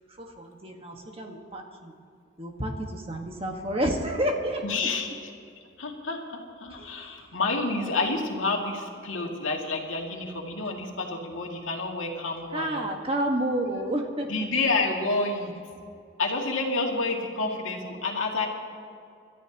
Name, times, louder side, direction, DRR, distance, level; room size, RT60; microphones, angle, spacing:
voice 1, 0.1-1.9 2.4-4.6 6.7-7.4 12.5-14.3, right 1 dB, 30° right, 2 dB, 1.6 m, -30 dB
voice 2, 4.6-5.3 5.8-12.9 14.3-15.5 16.2-18.5, left 3 dB, 85° left, 0 dB, 2.4 m, -29 dB
27.5 x 13.5 x 3.0 m, 2.4 s
head